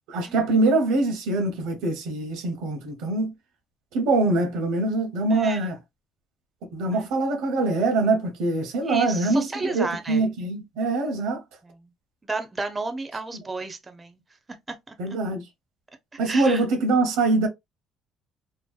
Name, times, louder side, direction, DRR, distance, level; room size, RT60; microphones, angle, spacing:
voice 1, 0.1-3.3 3.9-5.8 6.7-11.4 13.3-13.4 15.0-15.4 16.2-17.5, right 2 dB, 80° right, 0.7 m, -24 dB
voice 2, 8.8-10.2 11.6-11.9 12.3-14.2 14.9-15.0 16.1-16.6, right 3 dB, 20° right, 0.4 m, -32 dB
2.6 x 2.0 x 2.3 m
cardioid pair, 125°, 0 cm